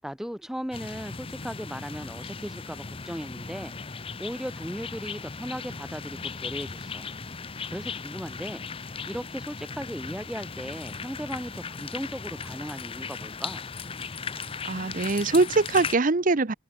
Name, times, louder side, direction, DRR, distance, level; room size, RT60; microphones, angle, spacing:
voice 1, 0.0-3.7 4.2-7.1 7.7-13.7, equal, ahead, 0.6 m, -37 dB
sound 1, 0.7-16.0, left 5 dB, 30° left, 0.8 m, -37 dB
voice 2, 14.6-16.5, right 3 dB, 45° right, 0.8 m, -23 dB
head